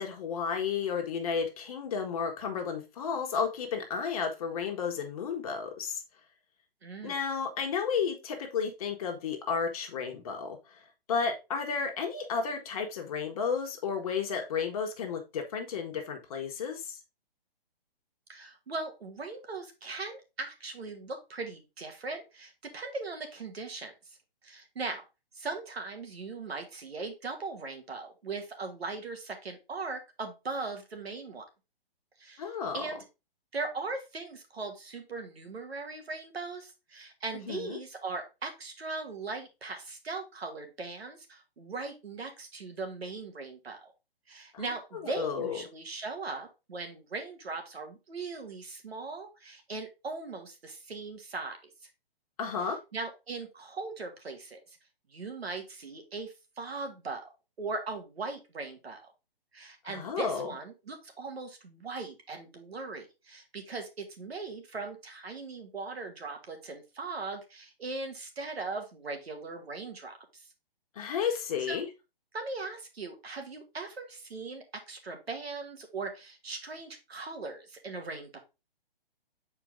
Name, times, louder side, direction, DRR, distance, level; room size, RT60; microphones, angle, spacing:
voice 1, 0.0-6.0 7.0-10.8 11.1-17.0 32.4-32.9 37.5-37.8 44.5-45.6 52.4-52.8 59.9-60.5 70.9-71.9, left 6 dB, 35° left, 3 dB, 1.3 m, -32 dB
voice 2, 6.8-7.2 18.3-24.2 24.4-25.0 25.3-31.4 32.2-32.5 32.7-33.0 33.5-43.9 44.3-51.6 51.8-51.9 52.9-54.8 55.1-57.3 57.6-59.1 59.5-70.5 71.7-71.8 72.3-78.4, right 3 dB, 85° right, 5 dB, 2.1 m, -39 dB
6.9 x 4.5 x 3.7 m, 0.27 s
hypercardioid pair, 160°, 30 cm